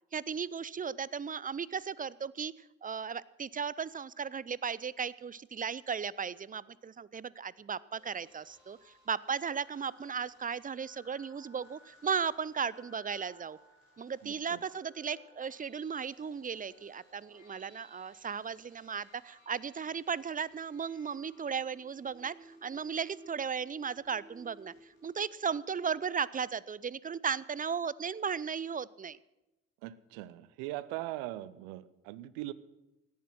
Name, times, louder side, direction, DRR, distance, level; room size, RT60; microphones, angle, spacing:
voice 1, 0.1-2.5 2.8-13.6 14.0-24.7 25.0-29.2, right 6 dB, 20° right, 21 dB, 0.6 m, -36 dB
sound 1, 7.9-26.2, right 1 dB, 85° left, 6.4 m, -59 dB
voice 2, 14.2-14.6 29.8-32.5, right 16 dB, 70° right, 18 dB, 0.8 m, -40 dB
17.0 x 11.0 x 6.0 m, 0.97 s
hypercardioid pair, 45°, 38 cm